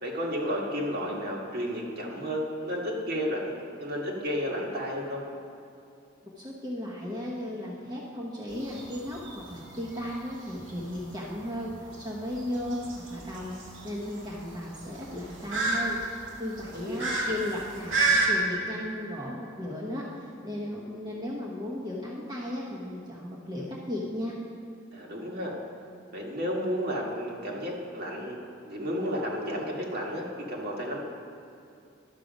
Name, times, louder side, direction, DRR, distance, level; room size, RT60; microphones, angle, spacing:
voice 1, 0.0-5.2 16.7-17.0 24.9-25.5 26.1-31.0, equal, 50° right, -2 dB, 1.6 m, -32 dB
voice 2, 6.2-16.0 16.4-24.4, left 1 dB, 20° right, -5 dB, 1.0 m, -35 dB
sound 1, 8.5-18.3, right 3 dB, 70° right, 2.1 m, -32 dB
12.0 x 6.7 x 5.1 m, 2.5 s
head